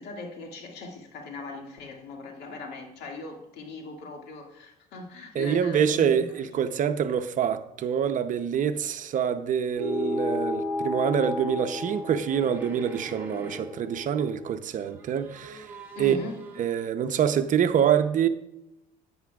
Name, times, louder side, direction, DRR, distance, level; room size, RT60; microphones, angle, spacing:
voice 1, 0.0-6.2 16.0-16.4, left 3 dB, 80° left, 2.1 m, -39 dB
voice 2, 5.3-15.7 16.0-16.2 16.6-18.3, right 8 dB, 50° right, 0.7 m, -25 dB
sound 1, 9.8-14.6, left 2 dB, 5° left, 0.6 m, -33 dB
sound 2, 11.6-14.1 14.6-16.9, right 2 dB, 15° right, 1.7 m, -45 dB
11.0 x 8.7 x 2.3 m
cardioid pair, 110°, 17 cm